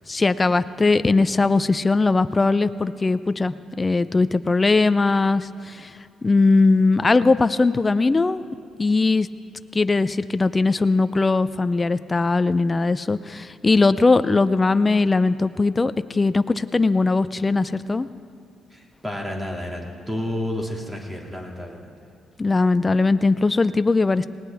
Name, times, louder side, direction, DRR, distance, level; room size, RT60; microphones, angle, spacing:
voice 1, 0.1-5.9 6.2-8.5 8.8-9.3 9.7-18.1 22.4-24.3, left 3 dB, 25° left, 14 dB, 0.5 m, -20 dB
voice 2, 18.7-21.9, left 1 dB, 10° right, 0 dB, 2.3 m, -31 dB
19.5 x 18.0 x 3.5 m, 2.3 s
cardioid pair, 90°, 0 cm